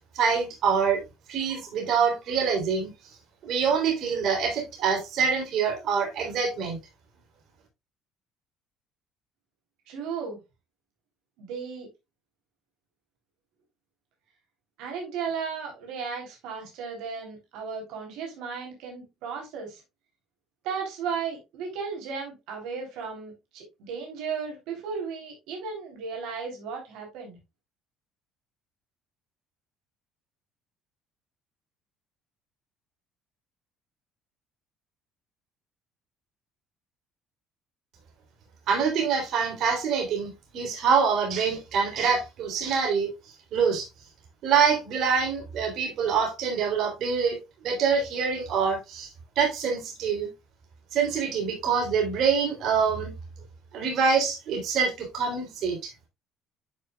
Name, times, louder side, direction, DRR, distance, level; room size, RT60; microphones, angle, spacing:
voice 1, 0.1-1.0 1.3-2.9 3.4-6.8 38.7-43.1 43.5-43.9 44.4-49.1 49.3-50.3 50.9-53.1 53.7-55.9, right 6 dB, 55° right, 3.2 m, -25 dB
voice 2, 9.9-10.4 11.4-11.9 14.8-19.8 20.6-27.4, right 6 dB, 80° right, 3.4 m, -35 dB
10.5 x 5.9 x 2.3 m
cardioid pair, 130°, 0 cm